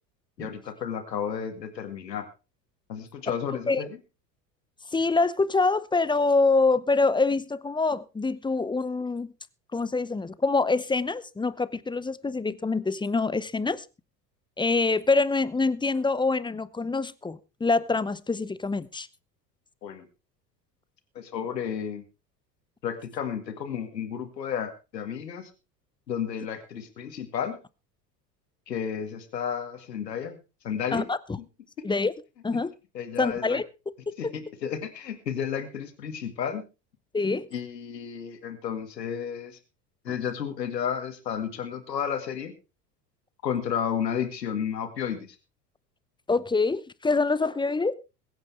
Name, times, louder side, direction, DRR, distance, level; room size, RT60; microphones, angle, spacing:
voice 1, 0.4-2.3 2.9-3.9 19.8-20.1 21.2-22.0 22.8-25.5 26.1-27.6 28.7-30.4 30.6-31.1 32.9-33.6 34.2-36.6 37.5-39.6 40.0-42.5 43.4-45.4, left 8 dB, 80° left, 2.1 m, -32 dB
voice 2, 3.5-3.8 4.9-9.3 9.7-13.9 14.6-19.1 30.9-31.4 31.8-32.1 32.4-32.7 33.2-33.6 34.1-34.3 37.1-37.5 46.3-47.9, left 3 dB, 10° left, 0.7 m, -25 dB
22.0 x 8.9 x 3.4 m
figure-of-eight pair, 75°, 49 cm